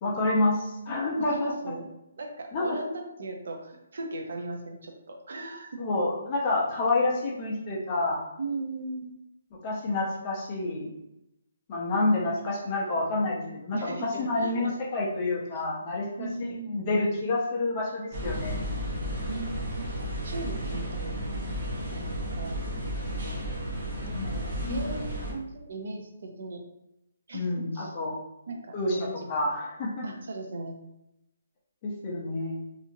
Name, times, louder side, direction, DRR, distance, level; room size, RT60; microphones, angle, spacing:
voice 1, 0.0-1.7 2.5-2.8 5.8-8.2 9.6-10.9 11.7-16.3 16.7-18.6 24.1-24.2 24.5-24.8 27.3-28.2 28.7-30.1 31.8-32.6, left 2 dB, 25° left, -3 dB, 0.5 m, -28 dB
voice 2, 1.2-1.9 2.2-5.8 8.4-9.2 13.7-14.7 16.2-16.8 19.3-21.2 21.9-22.0 22.4-22.6 24.0-26.6 27.3-27.4 27.7-27.9 28.5-29.3 30.0-30.8, right 2 dB, 60° right, 2 dB, 0.5 m, -38 dB
sound 1, 18.1-25.3, equal, 35° right, 0.9 m, -33 dB
2.8 x 2.5 x 2.5 m, 0.86 s
hypercardioid pair, 175°, 0 cm